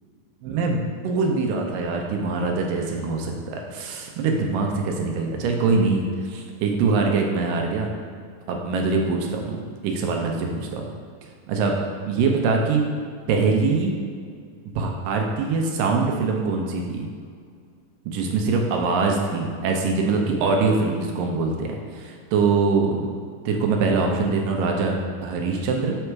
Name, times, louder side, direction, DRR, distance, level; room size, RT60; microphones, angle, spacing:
voice 1, 0.4-6.0 6.3-7.9 8.5-10.9 11.5-11.7 12.1-12.8 13.3-13.9 14.7-17.1 18.1-23.1 23.5-26.0, right 4 dB, 75° right, 1 dB, 2.3 m, -23 dB
7.9 x 4.2 x 4.6 m, 2.1 s
omnidirectional pair, 4.2 m